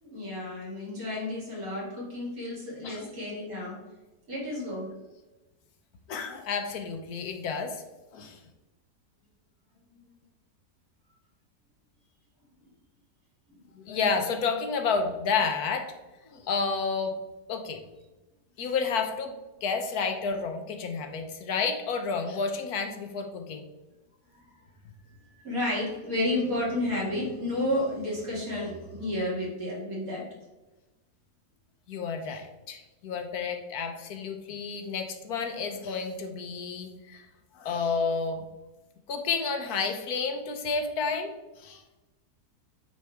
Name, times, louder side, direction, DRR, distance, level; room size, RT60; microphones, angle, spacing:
voice 1, 0.0-3.8 4.3-4.9 9.9-10.0 24.5-24.6 25.0-30.3, left 1 dB, 55° right, -5 dB, 2.8 m, -31 dB
voice 2, 6.1-7.8 8.1-8.4 13.7-15.9 16.3-17.2 17.5-17.8 18.6-23.7 31.9-37.3 37.5-38.5 39.1-41.8, left 5 dB, 70° left, 6 dB, 1.2 m, -30 dB
9.2 x 4.4 x 3.4 m, 1.1 s
omnidirectional pair, 1.7 m